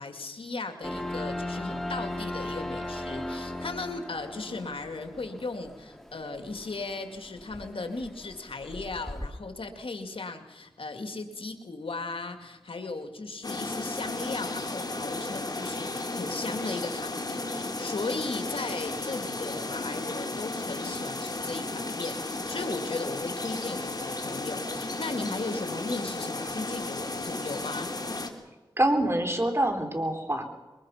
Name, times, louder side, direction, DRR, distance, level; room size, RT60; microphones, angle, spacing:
voice 1, 0.0-27.9, left 3 dB, 80° left, 6 dB, 2.3 m, -36 dB
sound 1, 0.8-9.3, left 1 dB, 5° left, 2.8 m, -38 dB
sound 2, 13.4-28.3, left 2 dB, 45° left, 2.8 m, -34 dB
voice 2, 28.8-30.4, right 1 dB, 30° right, 4 dB, 3.6 m, -25 dB
23.0 x 21.5 x 5.8 m, 1.2 s
cardioid pair, 40°, 9 cm